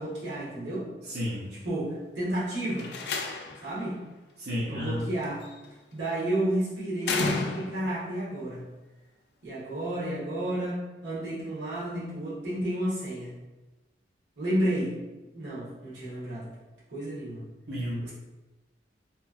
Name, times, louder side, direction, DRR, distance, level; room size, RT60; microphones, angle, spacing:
voice 1, 0.0-0.9 1.6-2.9 3.6-4.0 4.7-5.4 5.9-8.6 9.4-13.3 14.4-14.9 15.3-16.5 16.9-17.4 18.0-18.1, right 1 dB, 90° right, -7 dB, 1.2 m, -31 dB
voice 2, 1.0-1.5 4.4-5.0 17.7-18.1, left 1 dB, 60° right, -9 dB, 0.6 m, -32 dB
Slam, 2.7-3.7 5.2-5.7 7.0-8.0, left 3 dB, 70° left, 0.4 m, -32 dB
2.9 x 2.4 x 2.4 m, 1.1 s
head